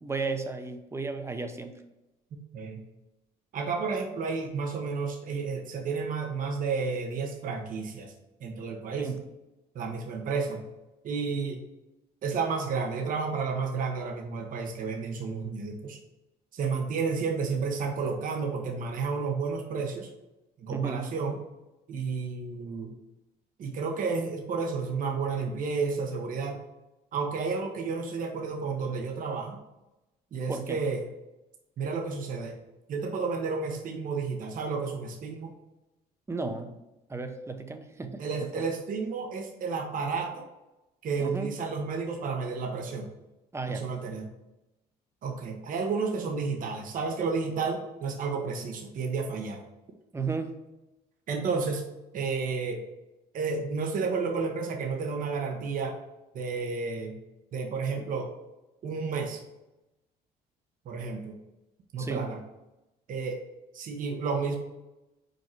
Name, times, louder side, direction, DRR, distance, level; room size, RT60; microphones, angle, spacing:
voice 1, 0.0-1.7 9.0-9.2 20.7-21.1 30.5-30.8 36.3-36.7 37.1-38.2 38.6-38.7 41.2-41.5 43.5-43.9 50.1-50.6 62.0-62.3, right 4 dB, 15° right, 7 dB, 0.8 m, -33 dB
voice 2, 3.5-8.1 8.4-9.1 9.7-10.7 11.0-11.6 12.2-16.0 16.5-20.1 20.6-21.4 21.9-22.9 23.6-26.6 27.1-29.6 30.3-31.1 31.8-32.6 32.9-35.5 38.2-40.4 41.0-43.1 43.7-44.3 45.2-49.6 51.3-51.8 52.1-52.8 53.3-56.0 56.3-57.2 57.5-58.3 58.8-59.4 60.8-61.4 61.9-62.4 63.1-63.4 63.7-64.6, right 4 dB, 55° right, 3 dB, 1.0 m, -31 dB
5.2 x 4.6 x 4.6 m, 0.97 s
cardioid pair, 110°, 17 cm